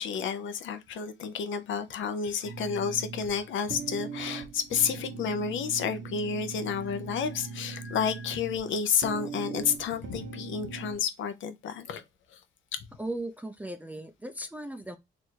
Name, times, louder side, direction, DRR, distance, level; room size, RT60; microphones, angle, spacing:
voice 1, 0.0-12.0 12.3-12.4, left 7 dB, 75° left, 0.7 m, -30 dB
sound 1, 2.4-10.9, right 5 dB, 65° right, 1.0 m, -40 dB
voice 2, 13.0-15.0, right 1 dB, 10° right, 0.4 m, -37 dB
3.1 x 2.5 x 4.3 m
cardioid pair, 90°, 20 cm